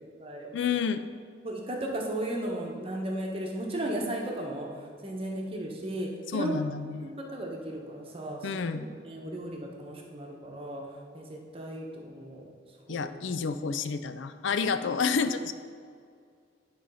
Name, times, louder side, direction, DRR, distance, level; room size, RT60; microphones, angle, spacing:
voice 1, 0.0-0.5 1.4-4.7 5.0-6.5 7.0-10.8 11.1-12.5 12.9-13.1, right 1 dB, 30° right, 0 dB, 1.1 m, -35 dB
voice 2, 0.5-1.0 6.3-7.1 8.4-8.9 12.9-15.5, left 5 dB, 70° left, 11 dB, 0.4 m, -29 dB
10.5 x 4.2 x 5.6 m, 2.2 s
head